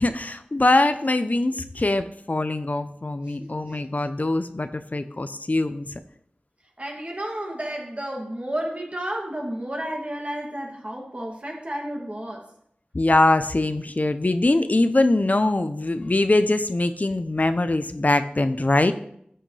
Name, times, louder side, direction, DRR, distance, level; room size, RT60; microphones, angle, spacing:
voice 1, 0.0-5.9 12.9-18.9, left 2 dB, 50° left, 10 dB, 0.6 m, -22 dB
voice 2, 3.3-3.8 6.8-12.5, right 1 dB, 40° right, 0 dB, 2.5 m, -32 dB
13.0 x 7.8 x 3.3 m, 0.69 s
wide cardioid pair, 40°, 3 cm